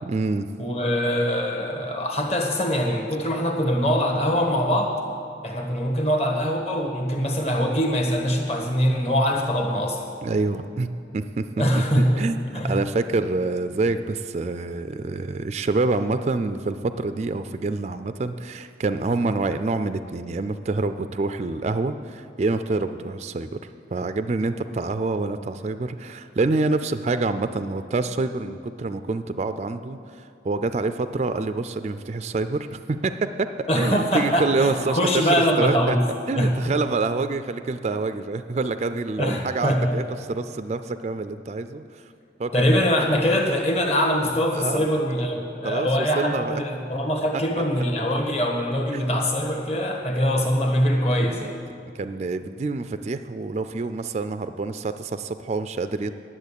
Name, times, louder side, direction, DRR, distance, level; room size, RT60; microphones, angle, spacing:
voice 1, 0.0-0.5 10.2-11.6 12.2-23.6 23.9-36.0 36.3-42.0 42.4-42.9 44.5-44.9 45.6-46.6 48.9-49.1 51.2-51.5 51.9-56.1, right 3 dB, 35° right, 10 dB, 0.3 m, -27 dB
voice 2, 0.6-4.9 5.4-10.0 11.6-12.2 12.5-12.8 33.7-36.0 36.4-36.5 39.2-40.0 42.5-51.6, equal, 35° left, 1 dB, 1.4 m, -23 dB
10.5 x 7.3 x 8.3 m, 2.6 s
head